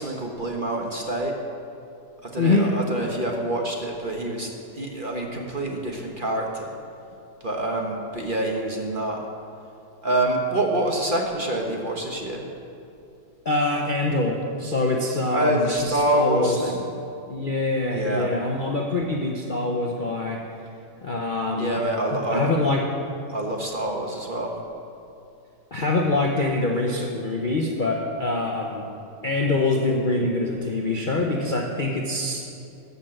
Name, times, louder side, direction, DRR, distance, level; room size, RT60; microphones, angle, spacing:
voice 1, 0.0-1.3 2.2-4.5 4.7-6.7 7.4-9.2 10.0-12.4 15.3-16.8 17.9-18.3 21.6-22.5 23.3-24.5, right 1 dB, 35° right, 0 dB, 1.1 m, -26 dB
voice 2, 2.4-2.7 13.4-16.7 17.3-20.4 21.0-21.8 22.1-22.9 25.7-28.9 29.2-32.4, left 2 dB, 40° left, 0 dB, 0.7 m, -24 dB
13.0 x 6.8 x 7.6 m, 2.7 s
omnidirectional pair, 1.9 m